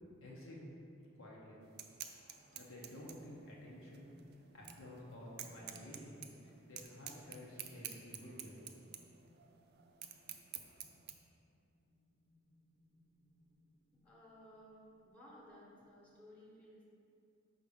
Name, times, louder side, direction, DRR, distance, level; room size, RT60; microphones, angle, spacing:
voice 1, 0.2-0.7 1.1-1.6 2.5-4.1 4.5-6.2 6.4-8.5 10.3-10.4, left 1 dB, 90° left, -4 dB, 0.9 m, -52 dB
sound 1, 1.6-11.1, right 10 dB, 55° right, 0.4 m, -50 dB
sound 2, 3.7-15.5, right 1 dB, 50° left, 0.7 m, -68 dB
voice 2, 14.0-14.8 15.0-16.8, left 1 dB, 5° left, -6 dB, 1.0 m, -58 dB
5.4 x 4.9 x 3.6 m, 2.6 s
head